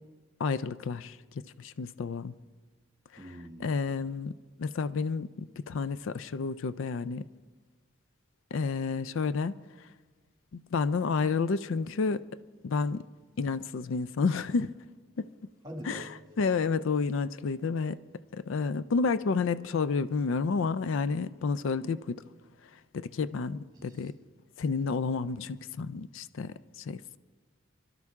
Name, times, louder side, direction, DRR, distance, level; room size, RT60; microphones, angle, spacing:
voice 1, 0.4-1.2 1.6-2.3 3.6-4.3 4.6-7.2 8.5-9.6 10.5-12.2 12.6-13.0 13.4-14.7 15.2-15.3 15.9-16.0 16.4-18.0 18.3-22.2 22.9-24.1 24.6-27.2, left 4 dB, 70° left, 0.4 m, -30 dB
voice 2, 3.2-3.8 15.6-16.1 23.7-24.1, equal, 20° right, 2.0 m, -44 dB
26.0 x 12.0 x 3.6 m
head